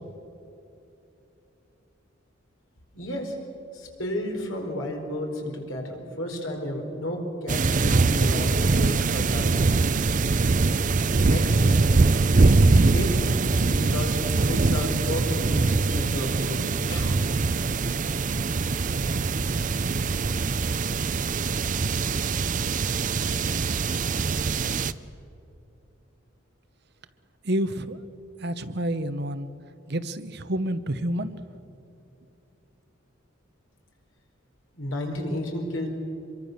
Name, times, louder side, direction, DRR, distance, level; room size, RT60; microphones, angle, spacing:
voice 1, 2.9-3.4 3.7-9.6 11.2-11.8 12.9-13.2 13.7-14.2 14.5-16.6 16.9-17.2 34.7-35.9, left 1 dB, 75° left, 2 dB, 4.6 m, -32 dB
sound 1, 7.5-24.9, right 3 dB, 40° right, 0.5 m, -23 dB
voice 2, 27.4-28.0 28.4-29.5 29.9-31.4, right 1 dB, 55° right, 11 dB, 1.0 m, -29 dB
25.5 x 23.0 x 6.8 m, 2.8 s
head